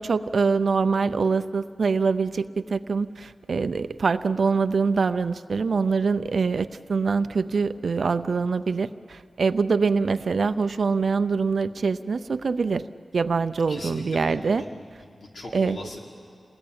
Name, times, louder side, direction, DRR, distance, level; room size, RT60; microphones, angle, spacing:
voice 1, 0.0-12.9 13.1-14.7 15.5-15.9, right 4 dB, 65° right, 11 dB, 0.5 m, -24 dB
voice 2, 13.7-16.0, left 1 dB, 70° left, -2 dB, 4.5 m, -40 dB
28.0 x 20.0 x 8.7 m, 2.3 s
wide cardioid pair, 105°, 0 cm